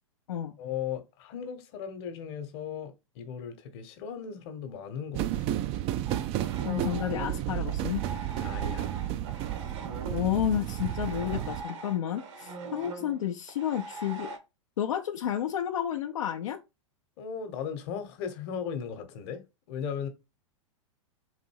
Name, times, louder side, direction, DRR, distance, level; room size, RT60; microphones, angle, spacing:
voice 1, 0.6-5.5 8.4-8.9 17.2-20.1, left 7 dB, 50° left, 1.1 m, -37 dB
sound 1, 5.1-11.6, right 12 dB, 35° right, 0.4 m, -32 dB
sound 2, 6.1-14.4, right 3 dB, 65° right, 1.3 m, -41 dB
voice 2, 6.6-8.1 10.1-14.3 14.8-16.6, left 10 dB, 75° left, 0.6 m, -31 dB
4.0 x 2.6 x 4.6 m
hypercardioid pair, 110°, 17 cm